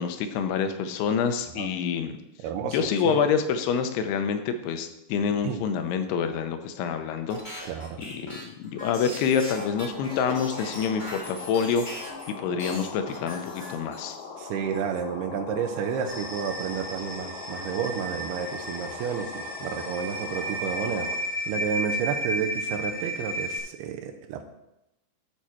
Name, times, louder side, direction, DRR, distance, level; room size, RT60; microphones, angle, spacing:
voice 1, 0.0-2.1 2.7-12.1 12.4-14.2, left 6 dB, 90° left, 8 dB, 2.8 m, -27 dB
voice 2, 2.4-2.8 3.0-3.2 5.4-5.6 7.7-8.0 14.4-21.1 21.5-24.4, right 7 dB, 85° right, 5 dB, 2.8 m, -31 dB
sound 1, 7.3-12.3 12.6-14.2, equal, 55° left, 0.5 m, -40 dB
sound 2, 9.7-21.2, left 5 dB, 70° left, 1.9 m, -41 dB
sound 3, 16.1-23.6, equal, 15° right, 1.1 m, -33 dB
12.5 x 4.7 x 4.4 m, 0.86 s
omnidirectional pair, 4.5 m